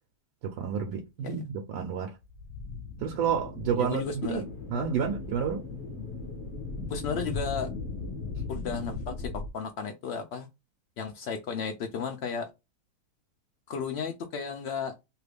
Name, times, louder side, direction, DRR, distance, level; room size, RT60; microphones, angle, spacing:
voice 1, 0.6-2.1 3.0-4.4 4.7-5.6, right 7 dB, 75° right, 1.2 m, -30 dB
sound 1, 2.2-9.5, left 3 dB, 55° left, 0.9 m, -38 dB
voice 2, 3.8-4.4 6.9-7.7 8.5-10.5 11.0-12.5 13.7-14.9, left 6 dB, 90° left, 0.5 m, -34 dB
3.0 x 2.4 x 3.3 m
omnidirectional pair, 1.7 m